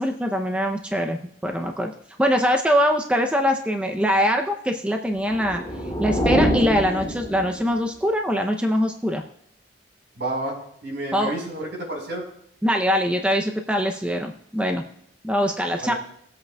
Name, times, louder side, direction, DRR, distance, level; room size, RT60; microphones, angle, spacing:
voice 1, 0.0-1.9 2.2-5.6 6.0-9.2 11.1-11.3 12.6-14.8 15.2-15.9, equal, 5° right, 4 dB, 0.5 m, -23 dB
sound 1, 5.2-7.8, equal, 15° left, 3.4 m, -25 dB
voice 2, 10.2-10.6 10.8-12.2 15.8-16.0, right 1 dB, 70° right, -2 dB, 4.3 m, -30 dB
19.0 x 8.0 x 2.3 m, 0.70 s
head